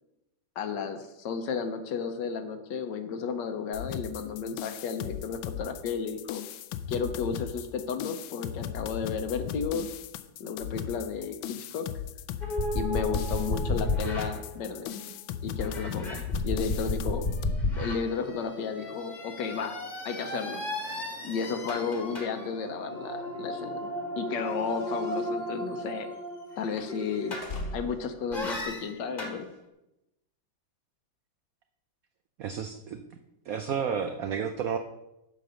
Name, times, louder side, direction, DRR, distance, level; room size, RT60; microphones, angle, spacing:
voice 1, 0.6-6.4 6.9-9.9 10.4-11.9 12.7-14.9 15.4-17.3 17.7-19.8 20.0-20.6 21.2-26.1 26.6-27.4 27.7-29.5, left 6 dB, 70° left, 8 dB, 1.4 m, -33 dB
sound 1, 3.7-17.4, left 10 dB, 85° left, 1.4 m, -38 dB
sound 2, 12.4-15.1 15.6-27.9 28.3-29.4, left 1 dB, 25° left, 1.3 m, -33 dB
sound 3, 24.3-28.1, left 1 dB, 40° left, 0.9 m, -43 dB
voice 2, 32.4-33.0 33.5-34.8, right 7 dB, 80° right, 8 dB, 0.7 m, -31 dB
7.8 x 5.3 x 6.3 m, 0.91 s
omnidirectional pair, 2.1 m